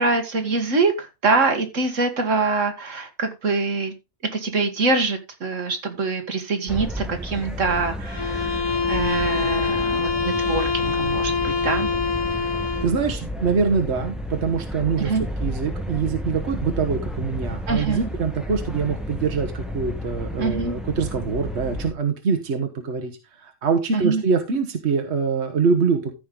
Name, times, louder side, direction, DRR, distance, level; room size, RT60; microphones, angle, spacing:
voice 1, 0.0-3.9 4.3-11.9 15.0-15.2 17.7-18.1 20.4-20.8 23.9-24.2, right 3 dB, 75° right, 6 dB, 2.0 m, -24 dB
sound 1, 6.7-21.9, equal, ahead, 1.2 m, -32 dB
sound 2, 8.1-13.0, left 5 dB, 25° left, 0.6 m, -25 dB
voice 2, 12.8-15.1 15.4-23.1 23.4-26.1, right 5 dB, 60° right, 6 dB, 1.5 m, -24 dB
14.5 x 5.2 x 3.8 m, 0.26 s
omnidirectional pair, 1.3 m